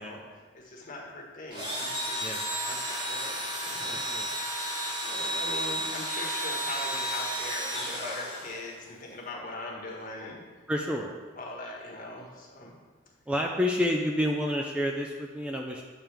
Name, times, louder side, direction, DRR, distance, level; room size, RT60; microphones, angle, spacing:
voice 1, 0.0-4.0 4.3-10.4 11.3-12.7, left 2 dB, 45° left, -2 dB, 1.4 m, -41 dB
Engine / Drill, 1.5-8.8, right 1 dB, 25° right, 1.6 m, -32 dB
voice 2, 3.9-4.3 10.7-11.1 13.3-15.8, left 1 dB, 5° right, 0 dB, 0.4 m, -29 dB
8.9 x 3.4 x 5.9 m, 1.4 s
head